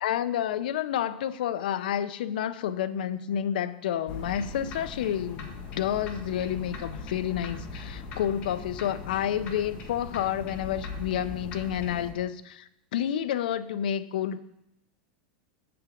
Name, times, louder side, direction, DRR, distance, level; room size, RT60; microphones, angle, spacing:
voice 1, 0.0-14.4, left 10 dB, 80° left, 13 dB, 0.5 m, -30 dB
sound 1, 4.1-12.1, left 3 dB, 30° left, 1.2 m, -39 dB
7.7 x 6.9 x 5.1 m, 0.87 s
supercardioid pair, 175°, 5 cm